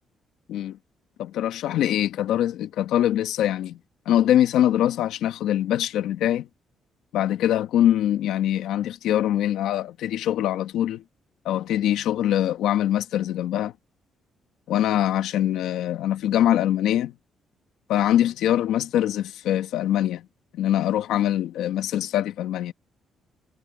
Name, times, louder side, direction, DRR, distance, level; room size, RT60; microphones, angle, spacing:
voice 1, 1.2-3.8 4.0-6.5 7.1-11.0 11.4-13.7 14.7-17.1 17.9-20.3 20.5-22.7, left 11 dB, 85° left, 1.4 m, -23 dB
cardioid pair, 90°, 0 cm